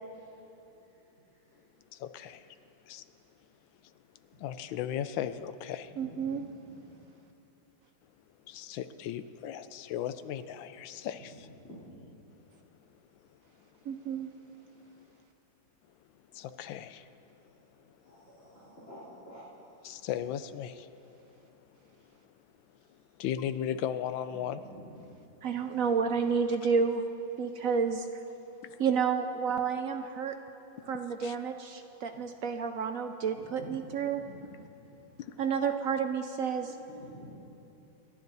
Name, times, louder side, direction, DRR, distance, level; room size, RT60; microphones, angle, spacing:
voice 1, 0.1-1.9 2.3-2.7 3.2-3.3 4.3-4.4 6.0-6.4 10.9-11.1 11.6-12.0 18.0-19.4 24.3-25.3 25.7-25.8 26.1-26.2 31.9-32.2 33.3-33.7 34.0-35.0 36.6-37.3, equal, 40° left, -11 dB, 3.8 m, -52 dB
voice 2, 1.9-2.4 2.9-3.0 4.4-5.9 8.5-11.3 16.3-17.1 19.8-20.9 23.2-24.6 28.6-28.8 31.2-31.3 35.2-35.4, left 10 dB, 80° left, 12 dB, 1.3 m, -36 dB
voice 3, 6.0-6.4 13.9-14.3 25.4-27.0 27.4-28.0 28.8-30.3 30.9-34.2 35.4-36.7, right 6 dB, 75° right, 6 dB, 0.7 m, -30 dB
28.5 x 11.5 x 4.0 m, 2.9 s
omnidirectional pair, 2.1 m